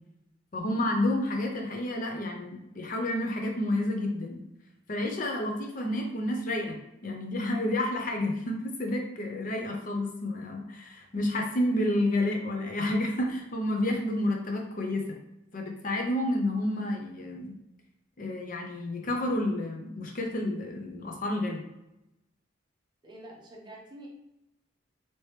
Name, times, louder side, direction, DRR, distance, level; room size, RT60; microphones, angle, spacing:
voice 1, 0.5-4.4 4.9-6.8 7.0-15.2 15.5-17.5 18.2-21.6, left 1 dB, 40° left, 2 dB, 0.6 m, -30 dB
voice 2, 23.0-24.1, right 1 dB, 20° right, -2 dB, 0.7 m, -47 dB
2.9 x 2.9 x 3.2 m, 0.90 s
head